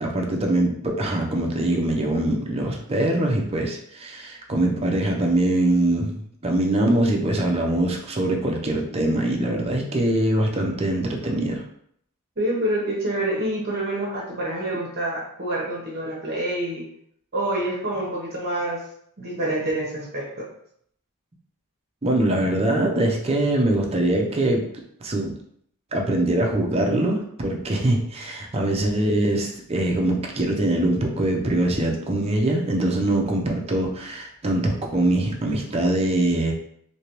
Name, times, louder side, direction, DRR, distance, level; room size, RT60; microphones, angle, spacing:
voice 1, 0.0-11.6 22.0-24.6 25.0-25.3 25.9-36.5, right 1 dB, 25° right, 1 dB, 0.6 m, -23 dB
voice 2, 12.4-16.8 17.3-18.8 19.2-20.5, right 1 dB, 45° right, -5 dB, 0.9 m, -27 dB
3.3 x 2.9 x 2.9 m, 0.68 s
head